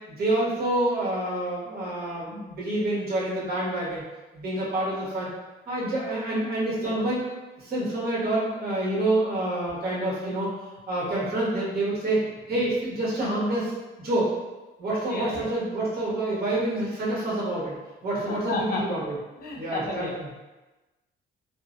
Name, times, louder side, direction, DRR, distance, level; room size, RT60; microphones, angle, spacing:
voice 1, 0.1-4.0 4.3-5.3 5.7-7.2 7.6-10.5 10.9-12.2 12.5-13.7 14.0-14.3 14.8-17.7 18.0-19.1 19.6-20.1, right 1 dB, 50° right, -6 dB, 1.1 m, -27 dB
voice 2, 15.1-15.5 18.1-19.0 19.4-20.4, left 3 dB, 50° left, -1 dB, 0.5 m, -33 dB
2.5 x 2.0 x 2.5 m, 1.1 s
cardioid pair, 90°, 20 cm